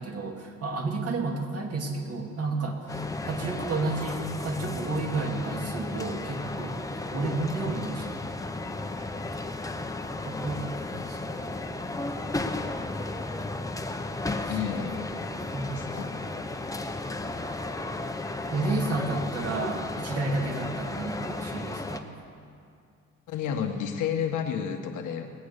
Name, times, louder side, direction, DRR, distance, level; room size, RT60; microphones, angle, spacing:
voice 1, 0.0-6.8 7.1-8.3 10.2-11.3 14.4-14.9 15.5-15.8 18.5-22.1, right 3 dB, 55° right, 2 dB, 2.3 m, -31 dB
sound 1, 2.9-22.0, left 2 dB, 10° left, 0.9 m, -34 dB
voice 2, 14.4-15.2 15.7-16.3 23.3-25.3, left 8 dB, 85° left, 4 dB, 1.5 m, -31 dB
21.0 x 8.6 x 6.7 m, 2.4 s
cardioid pair, 90°, 30 cm